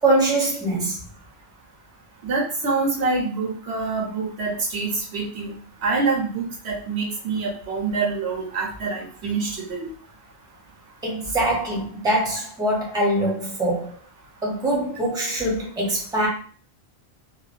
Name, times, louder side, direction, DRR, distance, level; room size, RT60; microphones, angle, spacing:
voice 1, 0.0-1.0 11.0-13.9 14.4-16.3, right 1 dB, 5° right, 0.7 m, -23 dB
voice 2, 2.2-5.6 5.8-9.9, right 4 dB, 80° right, 1.2 m, -26 dB
3.1 x 2.2 x 2.5 m
omnidirectional pair, 1.1 m